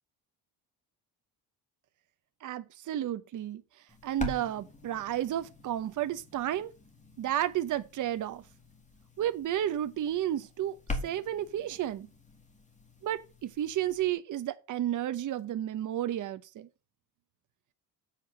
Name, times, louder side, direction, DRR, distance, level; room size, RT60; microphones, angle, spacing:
voice 1, 2.4-3.6 4.0-6.7 7.2-8.4 9.2-10.8 11.0-12.1 13.0-16.7, right 11 dB, 50° right, 0.9 m, -32 dB
sound 1, 3.9-14.1, left 2 dB, 20° left, 1.9 m, -44 dB
7.7 x 4.5 x 5.6 m
cardioid pair, 125°, 40 cm